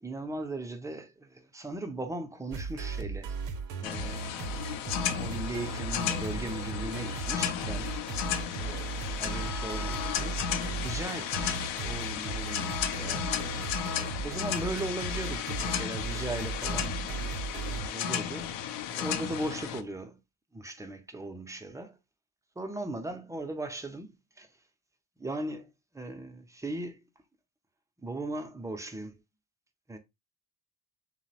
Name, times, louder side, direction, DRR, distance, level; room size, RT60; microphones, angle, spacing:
voice 1, 0.0-3.3 3.8-4.3 5.2-8.0 8.6-10.4 10.8-13.7 14.2-16.9 17.7-18.5 18.9-20.2 20.5-22.0 22.6-24.5 25.2-27.0 28.0-29.2 29.9-30.0, right 1 dB, 10° right, 0.3 m, -38 dB
sound 1, 2.5-17.9, right 4 dB, 60° right, 0.7 m, -37 dB
sound 2, 3.8-19.8, left 9 dB, 65° left, 0.5 m, -34 dB
2.9 x 2.0 x 2.7 m
hypercardioid pair, 65°, 49 cm